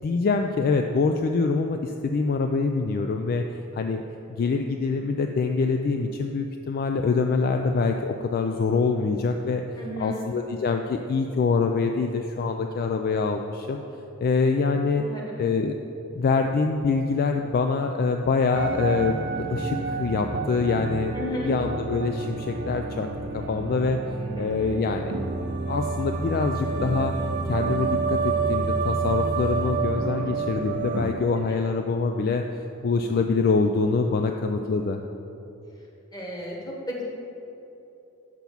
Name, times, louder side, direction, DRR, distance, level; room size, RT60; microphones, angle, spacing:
voice 1, 0.0-3.4 3.7-4.0 4.3-9.6 10.0-13.8 14.2-15.0 15.4-15.8 16.1-21.2 21.4-23.1 23.3-25.1 25.7-27.1 27.5-32.4 32.8-35.0, left 4 dB, 45° left, 5 dB, 0.3 m, -25 dB
voice 2, 9.8-10.2 15.0-15.4 21.1-21.6 24.0-24.7 31.5-31.6 36.1-37.0, equal, 20° left, -2 dB, 1.3 m, -34 dB
sound 1, 18.5-31.1, right 4 dB, 55° right, 0.6 m, -29 dB
6.0 x 5.8 x 6.9 m, 2.9 s
head